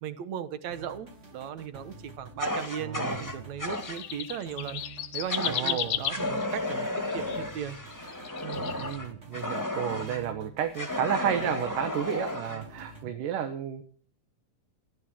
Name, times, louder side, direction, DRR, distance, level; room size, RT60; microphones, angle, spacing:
voice 1, 0.0-4.8 5.1-8.1 8.4-8.8 12.5-12.6, right 9 dB, 65° right, 13 dB, 2.4 m, -37 dB
sound 1, 0.7-13.1, right 4 dB, 25° right, 2.4 m, -48 dB
Fire, 2.4-4.0 5.3-5.7 6.1-10.2 10.8-12.6, left 2 dB, 10° left, 1.4 m, -33 dB
voice 2, 2.8-3.5 5.4-6.0 8.8-13.8, right 9 dB, 85° right, 7 dB, 2.9 m, -32 dB
sound 2, 3.7-7.4 7.9-9.0, left 11 dB, 65° left, 1.7 m, -34 dB
16.0 x 11.5 x 7.6 m, 0.43 s
omnidirectional pair, 3.7 m